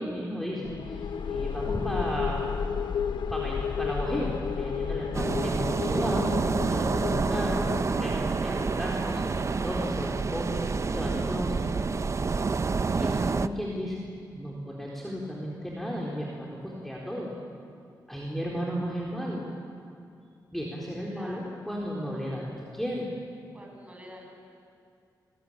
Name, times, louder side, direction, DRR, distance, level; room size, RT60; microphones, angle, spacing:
voice 1, 0.0-2.4 3.3-6.3 6.6-7.7 8.0-11.7 12.9-14.0 14.3-17.3 18.1-19.5 20.5-23.1, equal, 5° left, -4 dB, 4.1 m, -34 dB
sound 1, 0.6-8.4, left 6 dB, 80° left, 1.2 m, -32 dB
sound 2, 5.1-13.5, right 4 dB, 40° right, 0.7 m, -28 dB
voice 2, 21.1-21.6 23.5-24.4, equal, 15° right, 0 dB, 7.1 m, -47 dB
29.0 x 20.5 x 8.9 m, 2.4 s
wide cardioid pair, 100°, 8 cm